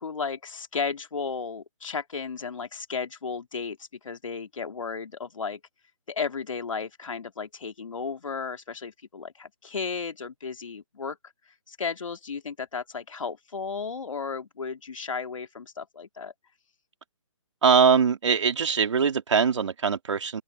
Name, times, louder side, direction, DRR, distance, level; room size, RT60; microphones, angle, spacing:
voice 1, 0.0-3.8 4.0-5.6 6.1-11.2 11.7-16.3, left 5 dB, 75° left, 2.8 m, -34 dB
voice 2, 17.6-20.4, right 6 dB, 65° right, 3.3 m, -22 dB
open air
hypercardioid pair, 160°, 17 cm